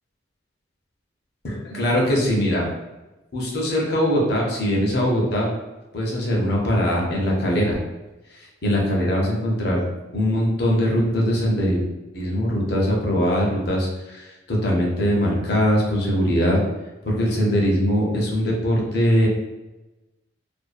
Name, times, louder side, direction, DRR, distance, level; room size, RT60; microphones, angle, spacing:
voice 1, 1.4-2.7 3.3-5.5 5.9-7.8 8.4-9.8 10.1-11.8 12.1-16.6 17.0-19.3, equal, 55° left, -2 dB, 0.6 m, -21 dB
2.5 x 2.2 x 2.4 m, 1.1 s
head